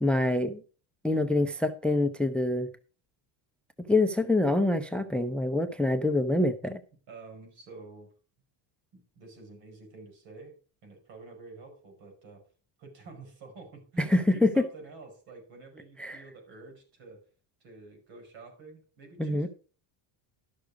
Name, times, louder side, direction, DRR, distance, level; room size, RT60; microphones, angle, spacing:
voice 1, 0.0-0.6 1.0-2.7 3.9-6.8 14.0-14.7 16.0-16.2 19.2-19.5, left 2 dB, ahead, 0.6 m, -25 dB
voice 2, 7.1-8.1 8.9-10.5 10.8-12.4 12.8-17.2 17.6-19.5, right 3 dB, 70° right, 5.6 m, -49 dB
12.0 x 6.7 x 4.8 m
cardioid pair, 125°, 47 cm